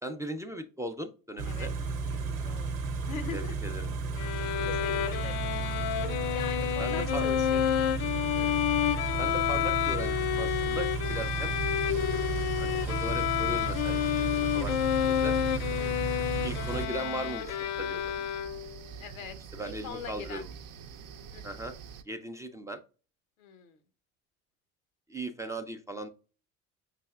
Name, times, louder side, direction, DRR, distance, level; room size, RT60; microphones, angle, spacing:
voice 1, 0.0-1.7 3.3-3.9 4.6-5.1 6.8-7.3 9.2-11.5 11.9-12.3 12.6-14.8 15.1-15.4 16.4-18.1 19.5-20.5 21.4-21.7 22.1-22.8 25.1-26.1, right 1 dB, 10° right, 6 dB, 0.5 m, -38 dB
Car / Idling, 1.4-16.9, right 4 dB, 80° right, 0.8 m, -33 dB
voice 2, 2.1-2.7 3.0-3.5 4.3-5.4 6.3-7.8 8.3-8.6 15.8-16.2 19.0-19.4 19.6-20.4 21.3-21.5 23.4-23.8, left 6 dB, 80° left, 11 dB, 0.8 m, -42 dB
Bowed string instrument, 4.2-18.8, left 11 dB, 55° left, 0.5 m, -30 dB
sound 1, 11.0-22.0, right 6 dB, 55° right, 0.7 m, -46 dB
5.4 x 3.3 x 2.3 m, 0.36 s
hypercardioid pair, 65°, 40 cm